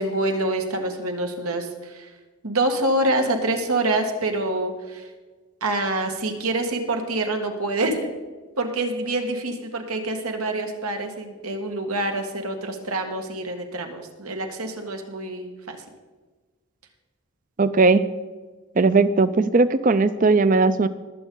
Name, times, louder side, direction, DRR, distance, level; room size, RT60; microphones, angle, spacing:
voice 1, 0.0-2.1 2.4-5.1 5.6-8.1 8.6-15.8, right 2 dB, 90° right, 4 dB, 1.8 m, -26 dB
voice 2, 17.6-18.1 18.8-20.9, right 3 dB, 35° right, 14 dB, 0.5 m, -18 dB
20.5 x 8.2 x 3.9 m, 1.3 s
head